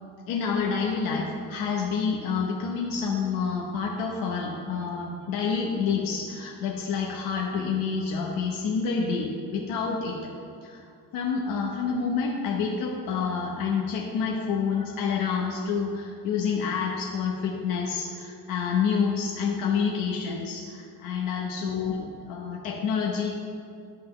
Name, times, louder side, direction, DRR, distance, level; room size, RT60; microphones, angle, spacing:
voice 1, 0.3-10.3 10.6-10.8 11.1-23.3, left 5 dB, 75° left, -2 dB, 1.1 m, -28 dB
11.5 x 7.8 x 3.3 m, 2.3 s
cardioid pair, 175°, 35 cm